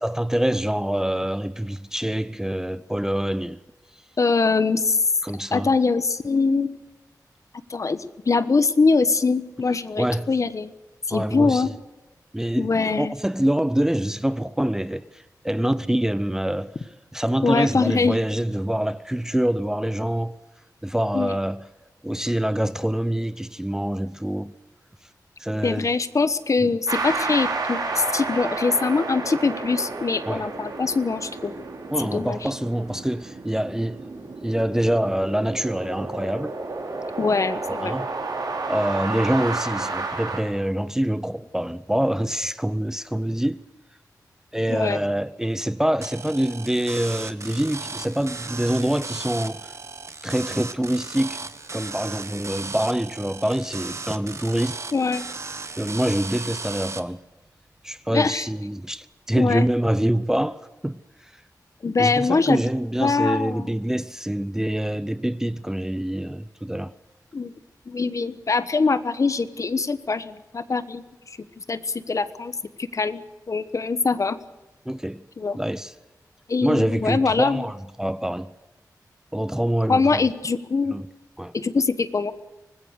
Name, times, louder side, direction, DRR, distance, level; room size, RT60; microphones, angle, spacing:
voice 1, 0.0-3.6 5.2-5.8 10.0-10.3 11.1-11.7 12.3-16.7 17.1-20.4 20.8-21.6 22.0-24.5 25.4-25.9 26.6-26.7 30.3-30.5 31.9-34.0 34.4-36.5 37.7-38.1 38.7-43.6 44.5-49.7 50.2-54.8 55.8-57.2 57.8-61.3 62.0-66.9 74.9-75.2 75.5-75.9 76.6-78.5 79.3-80.2 80.9-81.1 81.4-81.5, right 1 dB, 5° right, 0.6 m, -25 dB
voice 2, 4.2-5.1 5.5-6.7 7.7-10.7 11.1-11.7 12.6-13.1 17.4-18.2 21.1-21.3 25.6-31.5 32.0-32.5 37.2-38.0 44.7-45.0 54.9-55.2 58.1-58.5 59.4-59.6 61.8-62.6 63.0-63.7 67.3-67.5 67.9-73.2 73.5-74.4 75.4-75.6 76.5-77.6 79.9-81.0 81.5-82.3, left 4 dB, 50° left, 1.2 m, -23 dB
sound 1, 26.9-40.4, right 3 dB, 75° right, 5.3 m, -31 dB
sound 2, 46.0-57.0, right 3 dB, 45° right, 1.5 m, -36 dB
25.0 x 19.5 x 6.5 m
wide cardioid pair, 120°, 7 cm